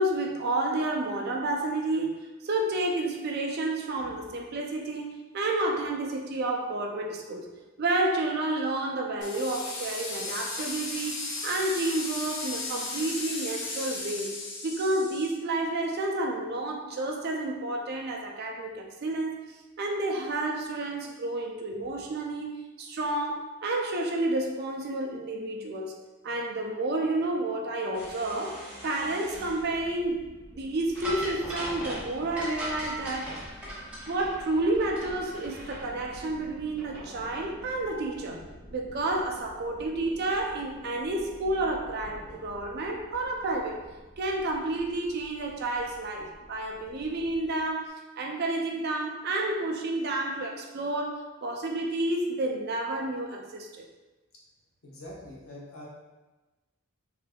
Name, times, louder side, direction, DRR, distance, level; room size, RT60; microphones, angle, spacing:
voice 1, 0.0-7.5 7.8-14.3 14.6-19.4 19.8-25.9 26.2-30.2 30.5-33.5 34.1-38.4 38.7-43.8 44.2-53.9, right 2 dB, 45° right, 2 dB, 0.4 m, -30 dB
sound 1, 9.2-15.3, left 3 dB, 50° left, 0.7 m, -36 dB
sound 2, 27.9-47.6, equal, 25° left, 1.4 m, -48 dB
sound 3, 31.0-35.1 35.3-35.4, right 1 dB, 5° right, 0.8 m, -37 dB
voice 2, 54.8-55.9, left 1 dB, 75° left, -5 dB, 0.9 m, -44 dB
3.2 x 3.2 x 2.2 m, 1.1 s
head